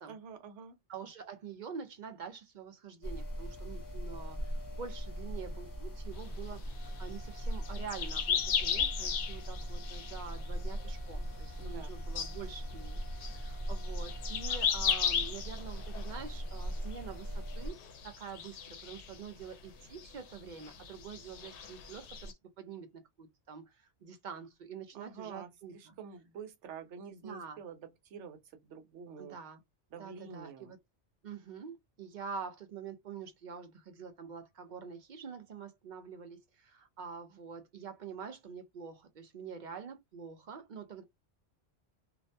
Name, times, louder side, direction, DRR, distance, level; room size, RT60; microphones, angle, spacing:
voice 1, 0.1-0.8 11.6-12.3 24.9-28.4 28.7-29.4 29.9-30.7, right 6 dB, 85° right, 1.0 m, -48 dB
voice 2, 0.9-26.0 27.1-27.6 29.2-29.6 30.0-30.8 31.2-41.0, right 6 dB, 60° right, 0.5 m, -46 dB
sound 1, 3.0-17.7, equal, 25° left, 0.5 m, -40 dB
early morning riad, 6.2-11.1 11.3-11.9 12.2-17.2 17.5-19.6 19.8-22.3, left 8 dB, 75° left, 0.9 m, -36 dB
2.5 x 2.1 x 2.6 m
omnidirectional pair, 1.2 m